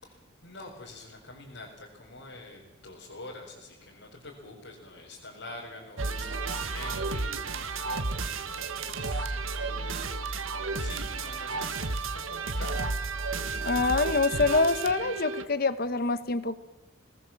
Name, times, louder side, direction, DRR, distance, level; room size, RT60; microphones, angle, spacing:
voice 1, 0.0-9.3 10.6-13.7, left 2 dB, 70° left, -4 dB, 4.7 m, -47 dB
sound 1, 6.0-15.5, right 3 dB, 85° right, 1.7 m, -32 dB
voice 2, 13.7-16.5, left 3 dB, 50° left, 13 dB, 1.2 m, -25 dB
23.0 x 19.5 x 7.4 m, 0.99 s
head